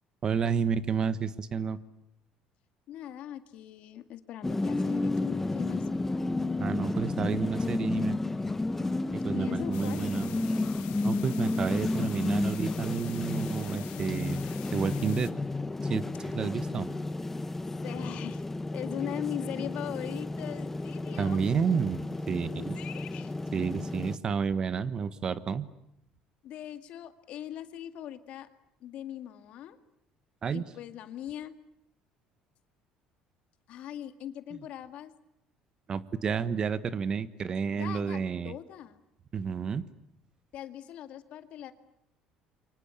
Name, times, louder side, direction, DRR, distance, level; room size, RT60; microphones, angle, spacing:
voice 1, 0.2-1.8 6.6-8.2 9.1-10.3 11.0-14.4 14.7-15.3 15.9-16.9 21.2-22.8 23.5-25.7 30.4-30.6 35.9-38.5 39.3-39.8, right 6 dB, 35° right, 14 dB, 1.3 m, -30 dB
voice 2, 2.9-5.9 9.3-10.0 17.8-18.5 18.7-21.5 22.4-23.3 26.4-28.5 28.8-29.8 30.5-31.5 33.7-35.1 37.7-39.0 40.5-41.7, left 11 dB, 60° left, 9 dB, 2.0 m, -40 dB
sound 1, 4.4-24.2, left 2 dB, 15° left, 1.1 m, -32 dB
sound 2, 9.7-15.3, left 17 dB, 85° left, 1.7 m, -47 dB
28.5 x 24.5 x 8.4 m, 0.79 s
cardioid pair, 125°, 2 cm